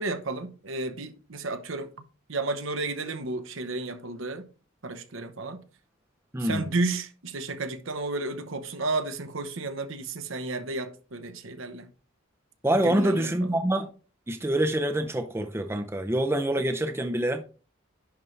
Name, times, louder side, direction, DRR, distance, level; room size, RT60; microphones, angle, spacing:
voice 1, 0.0-1.9 2.3-4.5 4.8-5.6 6.4-11.9 12.7-13.5, right 2 dB, 70° right, 0.9 m, -32 dB
voice 2, 12.6-13.9 14.3-17.4, right 1 dB, 10° right, 0.5 m, -26 dB
10.5 x 4.2 x 3.2 m
head